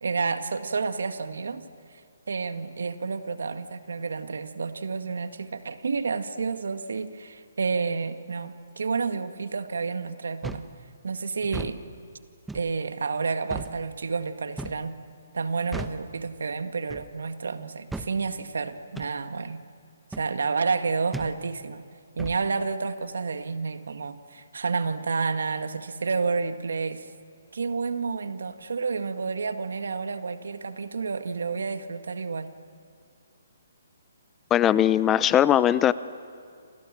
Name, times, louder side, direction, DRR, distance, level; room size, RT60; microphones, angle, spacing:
voice 1, 0.0-1.6 1.9-2.0 2.3-10.7 11.0-11.8 12.5-15.0 15.3-19.6 20.1-21.9 22.2-27.1 27.5-32.5, right 4 dB, 75° right, 9 dB, 1.8 m, -30 dB
sound 1, 10.4-10.7 11.4-11.8 12.5-12.7 13.5-13.7 14.6-14.9 15.7-16.0 16.9-17.1 17.9-18.1 18.9-19.1 20.1-20.3 21.1-21.3 22.2-22.4, right 2 dB, 5° right, 1.1 m, -36 dB
voice 2, 34.5-35.9, left 11 dB, 15° left, 17 dB, 0.6 m, -20 dB
28.5 x 27.5 x 7.6 m, 2.3 s
hypercardioid pair, 145°, 0 cm